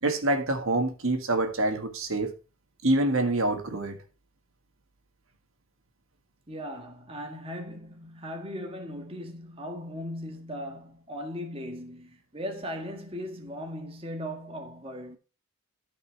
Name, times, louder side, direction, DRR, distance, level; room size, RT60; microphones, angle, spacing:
voice 1, 0.0-2.3 2.8-4.0, right 2 dB, 70° right, 1.8 m, -26 dB
voice 2, 6.5-15.2, equal, 25° right, 1.7 m, -38 dB
13.5 x 5.4 x 4.6 m
head